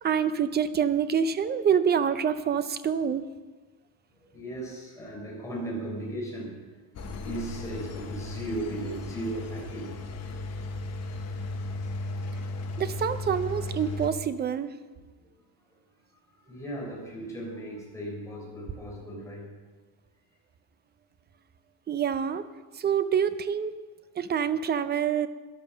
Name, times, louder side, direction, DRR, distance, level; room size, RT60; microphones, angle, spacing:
voice 1, 0.0-3.2 12.8-14.8 21.9-22.5 22.7-23.7 24.2-25.3, right 7 dB, 25° right, 12 dB, 0.5 m, -26 dB
voice 2, 4.2-6.8 7.2-10.0 16.5-19.5, right 1 dB, 5° left, -3 dB, 4.1 m, -36 dB
Engine, 6.9-14.1, left 2 dB, 35° left, 1.3 m, -36 dB
11.5 x 11.0 x 7.3 m, 1.3 s
cardioid pair, 170°, 44 cm